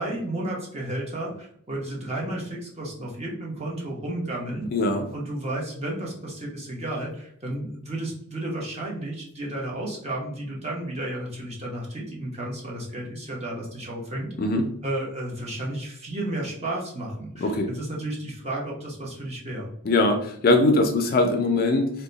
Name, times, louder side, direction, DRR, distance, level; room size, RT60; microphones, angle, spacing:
voice 1, 0.0-14.3 14.8-19.7, right 1 dB, 30° right, -2 dB, 0.9 m, -32 dB
voice 2, 4.7-5.1 14.4-14.6 17.4-17.7 19.8-21.9, left 2 dB, 40° left, 5 dB, 0.4 m, -21 dB
2.8 x 2.2 x 3.9 m, 0.66 s
head